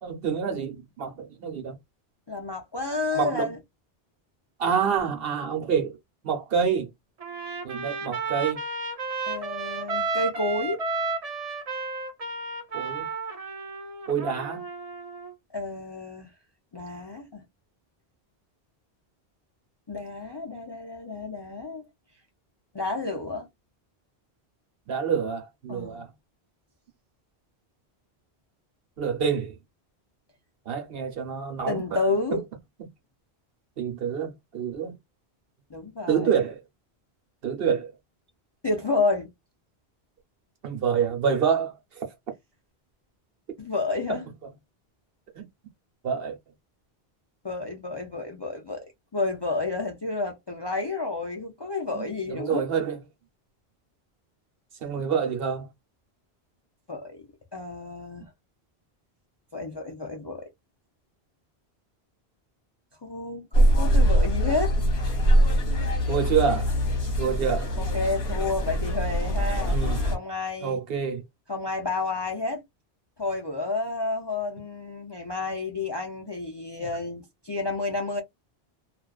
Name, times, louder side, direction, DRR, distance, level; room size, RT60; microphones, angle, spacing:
voice 1, 0.0-1.8 3.1-3.5 4.6-6.0 6.2-6.9 7.6-8.6 12.7-13.1 14.1-14.7 24.9-26.1 29.0-29.6 30.7-32.0 33.8-34.9 36.1-36.6 37.4-37.9 40.6-42.0 44.1-44.2 45.4-45.5 46.0-46.4 51.9-53.0 54.8-55.7 66.1-66.7 67.2-67.8 69.7-70.0 70.6-71.2, right 7 dB, 65° right, 1.0 m, -27 dB
voice 2, 2.3-3.6 9.3-10.8 15.5-16.3 16.7-17.4 19.9-21.8 22.7-23.5 25.7-26.0 31.7-32.4 35.7-36.3 38.6-39.3 43.6-44.2 47.4-48.9 49.1-52.7 56.9-58.3 59.5-60.5 63.0-64.7 67.8-69.8 70.1-70.8 71.5-72.6 73.2-78.2, left 3 dB, 35° left, 0.4 m, -30 dB
Trumpet, 7.2-15.3, right 4 dB, 40° right, 0.7 m, -32 dB
sound 1, 63.5-70.2, equal, 75° left, 1.1 m, -23 dB
2.4 x 2.3 x 2.3 m
omnidirectional pair, 1.1 m